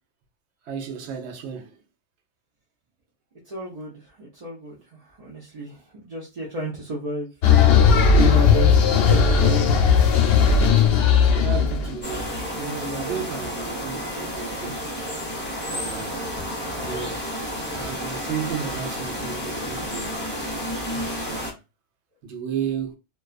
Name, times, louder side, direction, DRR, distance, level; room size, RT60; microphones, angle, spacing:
voice 1, 0.7-1.8 11.1-14.9 15.7-16.2 16.8-17.3 17.7-20.1 20.9-21.6 22.2-23.0, right 7 dB, 70° right, 0.9 m, -33 dB
voice 2, 3.4-7.3 8.1-9.8, right 1 dB, 40° right, 0.6 m, -31 dB
sound 1, 7.4-12.4, left 6 dB, 65° left, 0.7 m, -17 dB
sound 2, 12.0-21.5, equal, 10° left, 0.7 m, -31 dB
2.3 x 2.3 x 2.3 m
omnidirectional pair, 1.2 m